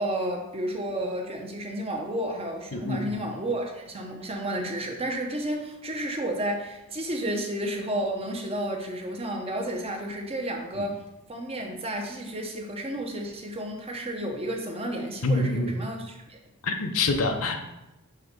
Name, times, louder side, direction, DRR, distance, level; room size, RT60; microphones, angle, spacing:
voice 1, 0.0-11.0 11.3-16.4, right 1 dB, 25° right, 2 dB, 0.9 m, -31 dB
voice 2, 2.7-3.0 15.2-15.7 16.6-17.6, left 3 dB, 70° left, 5 dB, 0.8 m, -25 dB
5.7 x 3.5 x 5.1 m, 0.93 s
head